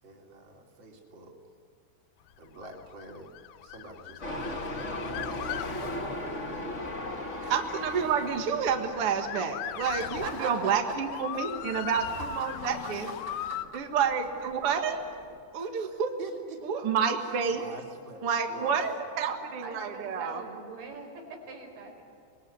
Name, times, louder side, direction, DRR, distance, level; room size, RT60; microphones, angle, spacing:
voice 1, 0.0-1.5 2.4-3.3 3.6-6.7 7.4-7.6 9.8-11.2 11.7-12.0 12.6-12.9 13.3-13.8 14.4-14.5 15.6-16.6 17.3-18.9, right 3 dB, 30° right, 0 dB, 3.5 m, -45 dB
Motor vehicle (road) / Siren, 2.5-13.6, left 12 dB, 80° left, 2.1 m, -40 dB
sound 1, 4.2-15.4, left 1 dB, 25° left, 1.8 m, -40 dB
voice 2, 7.5-13.1 13.7-14.9 15.5-16.1 16.6-17.6 18.2-20.4, right 6 dB, 50° right, 4 dB, 1.7 m, -29 dB
voice 3, 10.2-10.7 19.3-22.0, right 3 dB, 80° right, 1 dB, 7.1 m, -41 dB
26.0 x 20.5 x 9.7 m, 2.3 s
omnidirectional pair, 5.0 m